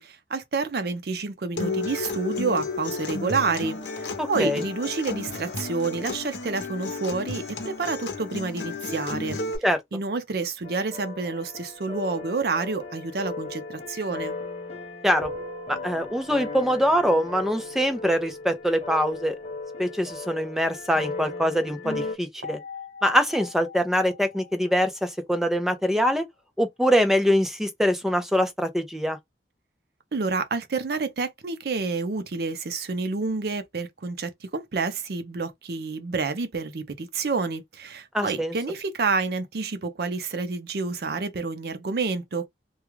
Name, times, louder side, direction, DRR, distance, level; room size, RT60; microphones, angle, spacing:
voice 1, 0.0-9.4 9.9-14.3 30.1-42.5, right 4 dB, 60° right, 0.5 m, -29 dB
Acoustic guitar, 1.6-9.6, left 3 dB, 80° left, 0.7 m, -32 dB
voice 2, 4.2-4.6 9.6-9.8 15.0-15.3 15.7-19.4 19.8-22.6 23.0-26.2 26.6-29.2 38.1-38.5, equal, ahead, 0.5 m, -23 dB
sound 1, 10.6-22.2, left 3 dB, 35° left, 0.7 m, -37 dB
sound 2, 15.2-16.7 22.4-25.8, left 2 dB, 75° right, 1.0 m, -42 dB
2.3 x 2.3 x 3.0 m
head